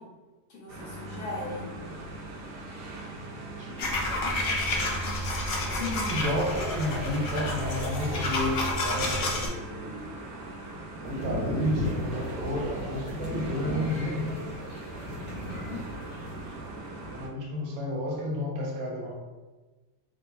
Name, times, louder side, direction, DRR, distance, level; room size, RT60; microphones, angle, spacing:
voice 1, 0.5-1.7 5.7-6.2 15.2-15.8, left 3 dB, 65° left, 1.4 m, -38 dB
sound 1, 0.7-17.3, right 2 dB, 85° right, 1.3 m, -41 dB
voice 2, 3.1-5.3 5.7-10.1 11.0-14.5 17.1-19.1, left 1 dB, 65° right, 1.1 m, -32 dB
sound 2, 3.8-9.5, left 2 dB, 90° left, 0.4 m, -30 dB
sound 3, 11.0-16.7, equal, 40° left, 1.5 m, -36 dB
3.8 x 2.4 x 4.0 m
omnidirectional pair, 1.7 m